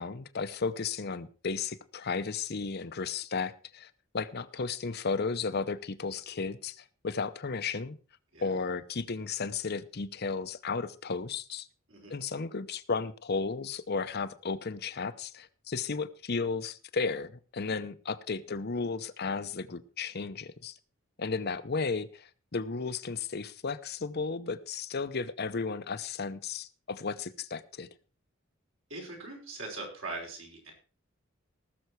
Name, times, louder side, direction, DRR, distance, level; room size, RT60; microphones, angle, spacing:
voice 1, 0.0-8.0 8.4-11.7 12.1-20.8 21.2-27.9, left 4 dB, 55° left, 11 dB, 0.8 m, -34 dB
voice 2, 8.3-8.6 11.9-12.2 28.9-30.7, right 2 dB, 80° right, 0 dB, 5.3 m, -41 dB
19.0 x 6.8 x 4.6 m, 0.37 s
head